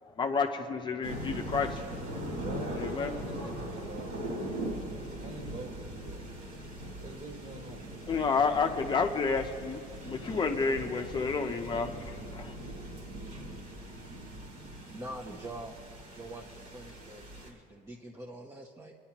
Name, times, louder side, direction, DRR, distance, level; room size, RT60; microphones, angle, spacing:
voice 1, 0.2-1.8 2.8-3.1 3.4-3.5 8.1-12.5, left 5 dB, 30° left, 4 dB, 0.7 m, -30 dB
sound 1, 1.0-17.5, right 1 dB, 65° right, 2.9 m, -40 dB
voice 2, 2.4-6.2 7.0-7.9 12.4-12.7 13.2-13.6, right 2 dB, 40° right, 2 dB, 1.8 m, -46 dB
voice 3, 14.9-15.7 16.1-18.9, right 1 dB, 20° right, -1 dB, 0.9 m, -44 dB
23.5 x 10.5 x 2.9 m, 2.2 s
cardioid pair, 125°, 16 cm